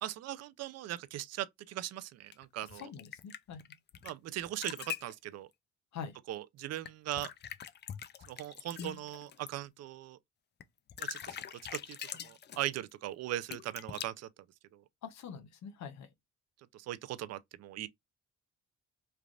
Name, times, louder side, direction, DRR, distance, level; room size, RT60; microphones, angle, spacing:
voice 1, 0.0-2.9 4.0-5.5 6.3-7.3 8.3-10.2 11.0-14.3 14.7-14.8 16.7-17.9, right 13 dB, 60° right, 0.4 m, -40 dB
sound 1, 2.3-4.1 4.4-5.1 6.9-9.5 10.6-10.7 10.9-12.7 13.5-14.1, left 9 dB, 35° left, 0.4 m, -43 dB
voice 2, 2.8-3.6 5.9-6.1 15.0-16.1, left 7 dB, 65° left, 0.7 m, -44 dB
3.3 x 2.4 x 2.3 m
cardioid pair, 90°, 30 cm